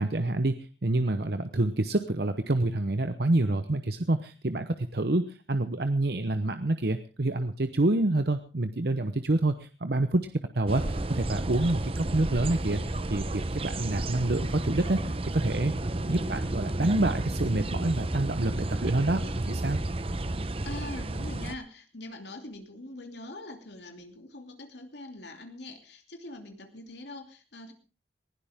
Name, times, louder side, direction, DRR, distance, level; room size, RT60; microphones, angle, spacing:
voice 1, 0.0-10.2 10.5-12.8 13.1-15.7 16.1-19.8, right 2 dB, 65° right, 9 dB, 0.9 m, -27 dB
sound 1, 10.7-21.5, right 2 dB, 30° right, 0.8 m, -32 dB
voice 2, 20.6-27.7, left 2 dB, 75° left, 5 dB, 2.8 m, -43 dB
19.5 x 16.0 x 3.6 m, 0.34 s
head